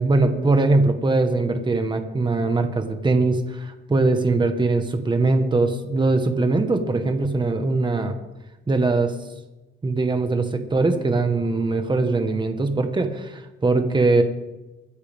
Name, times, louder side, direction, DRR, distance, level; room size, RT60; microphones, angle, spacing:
voice 1, 0.0-8.1 8.7-9.2 9.8-14.2, right 3 dB, 25° right, 6 dB, 1.5 m, -21 dB
24.5 x 9.7 x 3.7 m, 1.1 s
cardioid pair, 90°, 20 cm